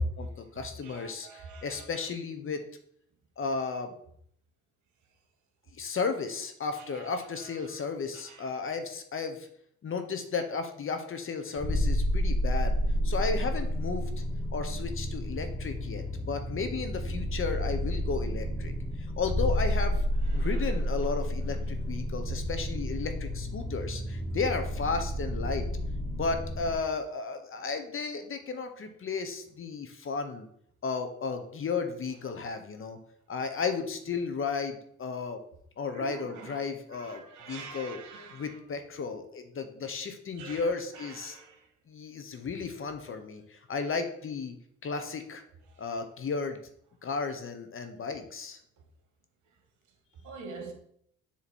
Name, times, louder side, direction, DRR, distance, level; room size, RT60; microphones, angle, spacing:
voice 1, 0.0-2.6 3.4-3.9 5.7-9.5 9.8-12.8 13.0-14.1 14.5-18.7 19.2-20.0 20.3-25.6 26.1-30.5 30.8-33.0 33.3-35.4 35.8-38.0 38.3-41.4 41.9-44.5 44.8-45.4 45.8-46.6 47.0-48.6, left 4 dB, 45° left, 0.9 m, -34 dB
voice 2, 0.8-1.8 6.9-7.0 20.4-20.5 35.9-36.6 36.9-38.5 40.4-40.6 41.2-41.5 50.2-50.7, right 4 dB, 75° right, 1.4 m, -44 dB
sound 1, 11.6-26.8, equal, 5° right, 1.2 m, -30 dB
7.1 x 3.1 x 4.2 m
cardioid pair, 90°, 30 cm